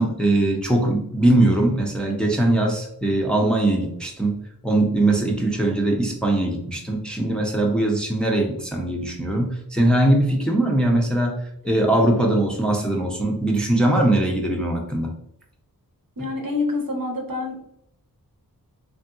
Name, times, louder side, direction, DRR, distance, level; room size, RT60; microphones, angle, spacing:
voice 1, 0.0-4.3 4.6-11.4 11.6-15.1, right 1 dB, ahead, 0 dB, 0.6 m, -21 dB
voice 2, 5.2-5.5 16.2-17.7, left 3 dB, 65° right, 0 dB, 1.0 m, -27 dB
3.5 x 2.7 x 2.3 m, 0.75 s
wide cardioid pair, 55°, 37 cm